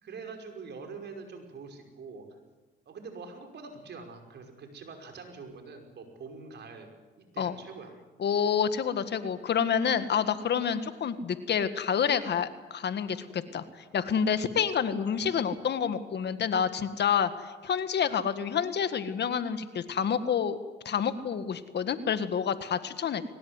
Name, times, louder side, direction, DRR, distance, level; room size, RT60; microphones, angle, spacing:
voice 1, 0.0-2.3 2.9-6.9 7.3-8.0, right 4 dB, 60° right, 4 dB, 5.5 m, -44 dB
voice 2, 8.2-13.6 13.9-20.6 20.9-23.2, left 7 dB, 60° left, 10 dB, 1.8 m, -28 dB
22.5 x 19.5 x 9.7 m, 1.2 s
cardioid pair, 90°, 20 cm